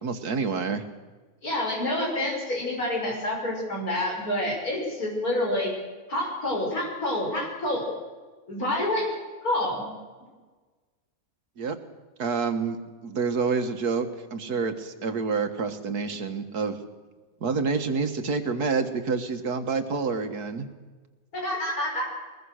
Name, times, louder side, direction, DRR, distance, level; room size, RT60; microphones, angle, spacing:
voice 1, 0.0-0.8 11.6-11.8 12.2-16.8 17.4-20.7, right 4 dB, 85° right, 8 dB, 2.1 m, -28 dB
voice 2, 1.4-5.7 6.1-7.8 8.5-9.1 9.4-9.8 21.4-22.0, left 1 dB, 70° left, -1 dB, 6.6 m, -27 dB
21.5 x 21.0 x 6.5 m, 1.3 s
omnidirectional pair, 1.6 m